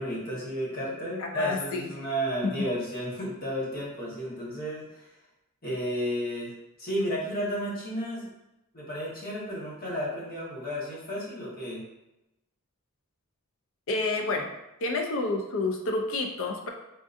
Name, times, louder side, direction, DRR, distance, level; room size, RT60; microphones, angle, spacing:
voice 1, 0.0-5.1 5.6-6.5 6.8-8.3 8.7-11.8, equal, 45° left, -6 dB, 1.1 m, -32 dB
voice 2, 1.3-1.9 2.4-2.5 13.9-14.5 14.8-16.7, left 2 dB, 65° left, 3 dB, 0.4 m, -29 dB
3.6 x 2.6 x 2.5 m, 0.93 s
head